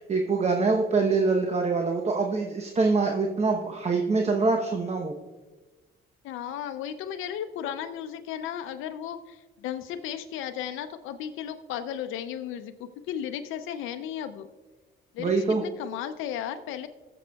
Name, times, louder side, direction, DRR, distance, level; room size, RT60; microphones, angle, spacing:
voice 1, 0.0-5.1 15.2-15.6, right 4 dB, 35° right, 2 dB, 0.9 m, -24 dB
voice 2, 6.2-14.5 15.1-16.9, left 9 dB, 90° left, 8 dB, 0.5 m, -35 dB
19.5 x 6.9 x 2.3 m, 1.2 s
cardioid pair, 90°, 20 cm